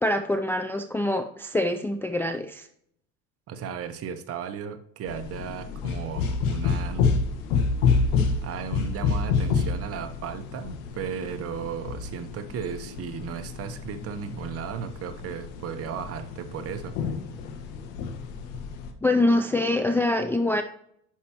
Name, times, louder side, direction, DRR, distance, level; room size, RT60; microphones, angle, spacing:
voice 1, 0.0-2.7 19.0-20.6, left 1 dB, 5° left, 6 dB, 0.3 m, -24 dB
voice 2, 3.5-7.1 8.4-17.0, right 7 dB, 40° right, 10 dB, 1.0 m, -35 dB
sound 1, 5.1-18.9, left 5 dB, 80° left, 1.4 m, -29 dB
10.5 x 5.6 x 2.9 m, 0.70 s
supercardioid pair, 120°, 36 cm